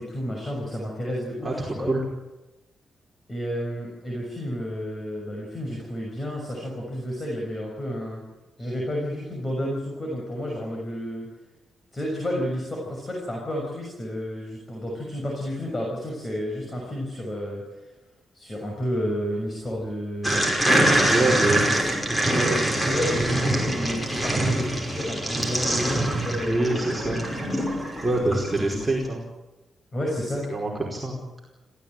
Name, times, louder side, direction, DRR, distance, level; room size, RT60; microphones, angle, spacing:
voice 1, 0.0-1.9 3.3-8.2 8.6-11.3 11.9-17.6 18.3-20.5 21.1-21.5 22.2-27.2 27.4-28.1 28.6-28.8 29.9-30.5, equal, 25° left, -1 dB, 6.4 m, -31 dB
voice 2, 1.4-2.0 20.9-21.6 26.4-27.2 28.0-29.2 30.5-31.2, right 2 dB, 15° right, -3 dB, 4.8 m, -25 dB
sound 1, 20.2-28.8, right 1 dB, 10° left, 5.6 m, -24 dB
26.5 x 16.0 x 9.1 m, 1.1 s
cardioid pair, 115°, 0 cm